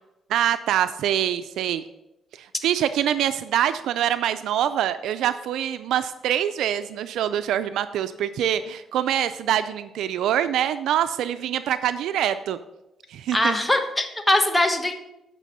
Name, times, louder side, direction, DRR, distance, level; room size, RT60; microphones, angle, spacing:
voice 1, 0.3-1.8 2.4-12.6 13.1-13.6, right 10 dB, 80° right, 12 dB, 0.4 m, -25 dB
voice 2, 13.3-14.9, left 1 dB, 10° left, 6 dB, 1.2 m, -21 dB
9.1 x 6.0 x 5.5 m, 0.92 s
cardioid pair, 90°, 0 cm